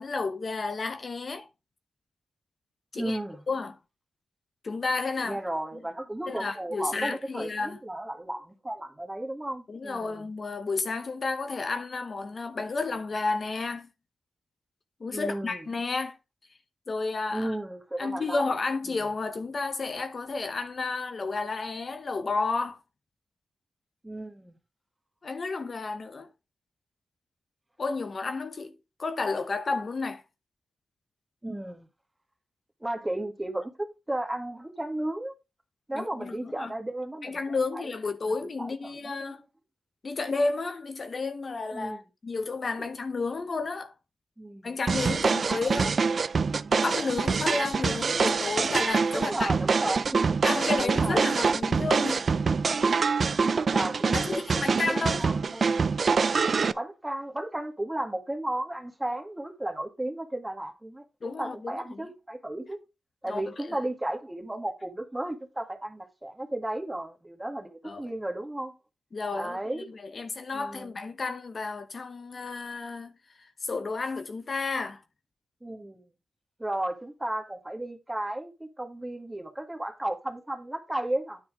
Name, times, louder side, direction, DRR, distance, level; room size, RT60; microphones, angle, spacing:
voice 1, 0.0-1.5 2.9-3.2 3.5-3.8 4.6-5.4 6.3-7.8 9.7-13.9 15.0-16.2 16.9-17.6 18.0-22.8 25.2-26.3 27.8-28.7 29.0-30.2 35.9-36.7 37.2-39.4 40.0-43.9 44.6-45.9 46.8-49.5 50.4-52.3 54.1-55.2 61.2-62.1 63.3-63.4 67.8-68.0 69.1-73.1 73.6-75.0, left 3 dB, 50° left, 0.9 m, -31 dB
voice 2, 2.9-3.4 5.2-10.3 15.1-15.6 17.3-18.5 18.8-19.0 24.0-24.6 31.4-31.9 32.8-33.7 34.1-35.3 35.9-37.4 37.7-37.9 38.3-39.4 41.7-42.0 44.4-44.8 45.1-45.2 45.5-45.6 49.1-50.4 50.8-51.3 52.6-52.9 53.7-55.7 56.7-62.8 63.2-68.7 69.3-69.9 70.5-71.0 75.6-76.1 76.6-81.4, right 1 dB, 15° right, 1.8 m, -34 dB
sound 1, 44.9-56.7, right 5 dB, 55° right, 0.4 m, -25 dB
9.7 x 4.3 x 5.1 m
cardioid pair, 80°, 0 cm